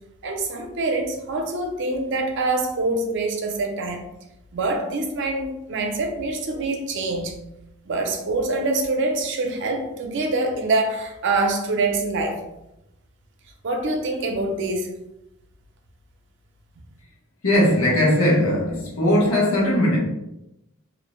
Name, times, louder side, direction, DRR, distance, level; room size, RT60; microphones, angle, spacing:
voice 1, 0.2-4.0 4.5-7.4 7.9-12.4 13.6-14.9, right 2 dB, 60° right, 4 dB, 0.5 m, -25 dB
voice 2, 17.4-20.0, left 1 dB, 80° left, -3 dB, 0.9 m, -19 dB
2.6 x 2.1 x 2.9 m, 0.89 s
head